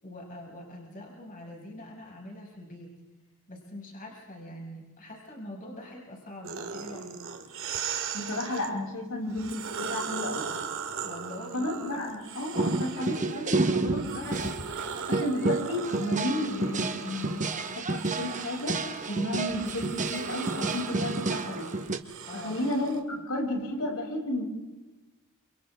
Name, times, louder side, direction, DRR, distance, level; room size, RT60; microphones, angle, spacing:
voice 1, 0.0-2.9 3.5-7.2 11.0-11.7 11.9-12.1 22.2-22.7 23.0-23.3, left 1 dB, 40° left, -1 dB, 6.0 m, -44 dB
sound 1, 6.4-8.7 9.3-13.4 13.9-23.0, right 6 dB, 65° right, 2.2 m, -38 dB
voice 2, 8.1-10.5 11.5-14.5 15.1-17.4 17.7-21.7 22.3-24.4, left 1 dB, 80° left, -2 dB, 7.2 m, -32 dB
sound 2, 12.5-22.0, right 3 dB, 35° right, 1.4 m, -30 dB
29.5 x 28.0 x 3.7 m, 1.1 s
head